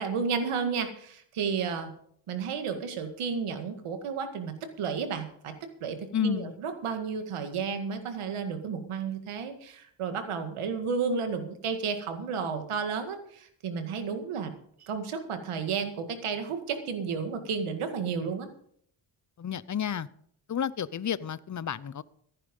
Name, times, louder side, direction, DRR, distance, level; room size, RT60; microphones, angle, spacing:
voice 1, 0.0-1.9 2.3-5.5 5.8-14.5 14.8-18.5, right 5 dB, 85° right, 2.1 m, -32 dB
voice 2, 6.1-6.5 19.4-20.1 20.5-22.0, left 8 dB, 35° left, 0.7 m, -31 dB
14.5 x 10.0 x 5.4 m
cardioid pair, 70°, 49 cm